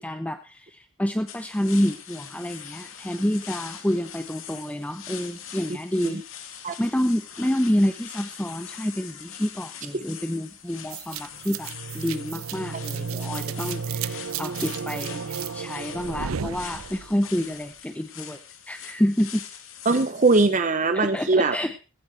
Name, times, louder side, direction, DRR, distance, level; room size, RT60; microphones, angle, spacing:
voice 1, 0.0-6.2 6.8-18.4 18.7-19.4 20.9-21.8, equal, 5° left, 8 dB, 0.7 m, -28 dB
sound 1, 1.3-20.5, left 8 dB, 80° left, 2.6 m, -42 dB
sound 2, 10.9-17.3, right 6 dB, 85° right, 0.6 m, -33 dB
voice 2, 19.9-21.6, right 3 dB, 35° right, 10 dB, 0.8 m, -21 dB
15.5 x 15.0 x 3.3 m, 0.32 s
head